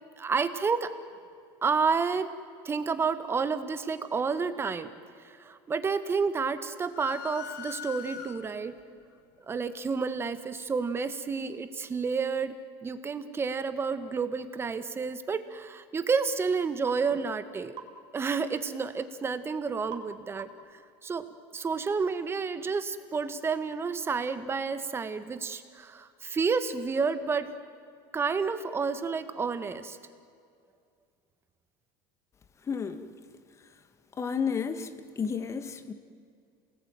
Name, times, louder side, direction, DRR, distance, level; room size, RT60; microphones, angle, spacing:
voice 1, 0.2-0.9 1.6-2.3 2.7-4.9 5.2-8.7 9.5-12.6 12.8-17.8 18.1-21.3 21.5-27.5 28.1-30.0, right 5 dB, 20° right, 11 dB, 1.8 m, -30 dB
sound 1, 6.9-8.8, left 9 dB, 85° left, 2.0 m, -41 dB
sound 2, 16.9-17.0 17.8-18.0 19.9-20.1 20.4-20.7, right 8 dB, 45° right, 3.4 m, -43 dB
voice 2, 32.7-33.1 34.2-34.9 35.2-35.9, left 6 dB, 25° left, 9 dB, 2.1 m, -31 dB
28.5 x 19.5 x 9.3 m, 2.3 s
supercardioid pair, 125°, 11 cm